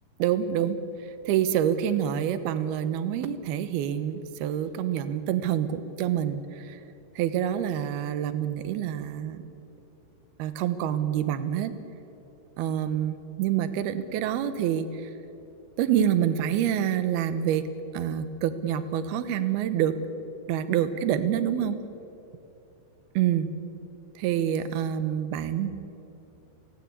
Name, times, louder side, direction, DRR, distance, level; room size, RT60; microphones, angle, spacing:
voice 1, 0.2-0.8 1.2-6.8 7.2-9.4 10.4-11.7 12.6-15.1 15.8-17.6 17.9-19.9 20.5-21.8 23.1-23.5 24.2-25.7, right 10 dB, 70° right, 12 dB, 2.6 m, -27 dB
25.5 x 18.0 x 8.6 m, 2.9 s
omnidirectional pair, 5.4 m